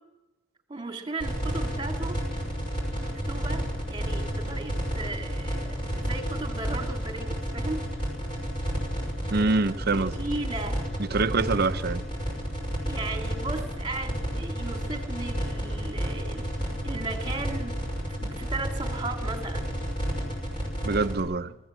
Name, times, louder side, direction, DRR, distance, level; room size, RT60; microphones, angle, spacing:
voice 1, 0.7-2.2 3.0-7.8 9.9-10.9 12.9-17.8 18.2-19.7, right 3 dB, 25° right, 2.2 m, -36 dB
sound 1, 1.2-21.2, equal, 25° left, 6.0 m, -31 dB
voice 2, 9.3-10.2 11.0-12.1 20.8-21.5, right 3 dB, 50° right, 0.7 m, -25 dB
23.5 x 14.5 x 7.7 m
head